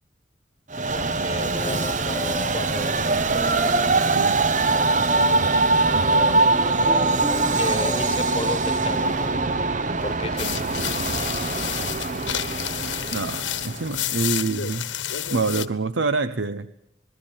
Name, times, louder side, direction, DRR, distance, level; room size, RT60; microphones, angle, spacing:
Train, 0.7-14.2, right 3 dB, 40° right, 0.8 m, -23 dB
voice 1, 0.8-3.6 4.6-4.9 7.4-9.5 10.0-10.6, left 2 dB, 30° left, 12 dB, 1.3 m, -33 dB
sound 1, 1.4-8.1, left 2 dB, ahead, 1.3 m, -35 dB
sound 2, 10.4-15.6, left 10 dB, 80° left, 1.3 m, -30 dB
voice 2, 13.1-14.9 15.3-16.7, right 3 dB, 80° right, 12 dB, 0.8 m, -26 dB
27.0 x 20.0 x 7.3 m, 0.76 s
head